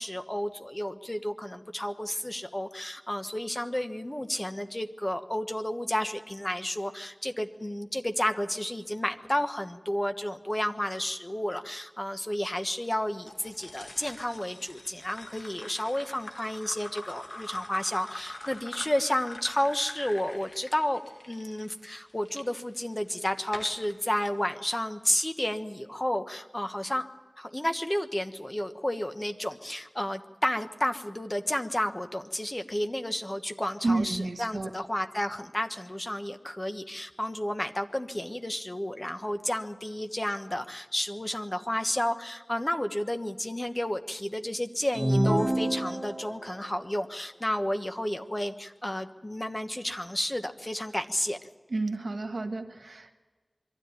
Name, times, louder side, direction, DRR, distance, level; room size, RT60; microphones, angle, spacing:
voice 1, 0.0-21.0 21.3-27.1 27.4-51.4, left 1 dB, 25° left, 7 dB, 1.2 m, -31 dB
sound 1, 13.3-22.4 23.0-23.9, left 1 dB, 60° left, 1.9 m, -44 dB
voice 2, 33.8-34.7 51.7-53.1, right 2 dB, 85° right, 5 dB, 1.6 m, -30 dB
sound 2, 44.9-46.5, right 1 dB, 15° right, 1.5 m, -27 dB
23.0 x 13.0 x 9.5 m, 1.3 s
wide cardioid pair, 55°, 0 cm